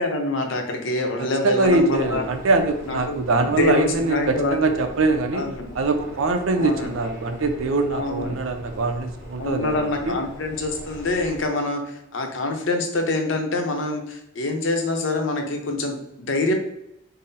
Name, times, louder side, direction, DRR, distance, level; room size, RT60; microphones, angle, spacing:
voice 1, 0.0-2.2 2.9-4.6 5.3-5.6 6.6-6.9 7.9-8.3 9.4-16.5, left 2 dB, 65° left, 4 dB, 0.7 m, -25 dB
voice 2, 1.2-5.5 5.7-10.2, right 3 dB, 80° right, 6 dB, 0.5 m, -23 dB
sound 1, 1.6-11.5, equal, 15° right, 1.4 m, -41 dB
3.8 x 2.0 x 4.0 m, 0.82 s
head